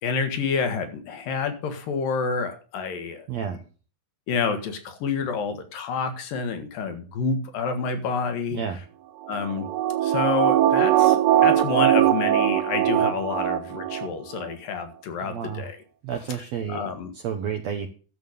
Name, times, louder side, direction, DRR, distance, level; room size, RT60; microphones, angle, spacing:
voice 1, 0.0-3.3 4.3-8.6 9.3-9.7 10.0-15.8 16.7-17.1, left 5 dB, 75° left, 8 dB, 3.3 m, -28 dB
voice 2, 3.3-3.6 8.5-8.8 15.2-15.7 16.0-17.9, right 7 dB, 65° right, 5 dB, 1.9 m, -31 dB
sound 1, 9.3-14.1 14.4-14.5, right 12 dB, 90° right, 2.6 m, -21 dB
11.0 x 7.3 x 6.7 m, 0.38 s
omnidirectional pair, 4.0 m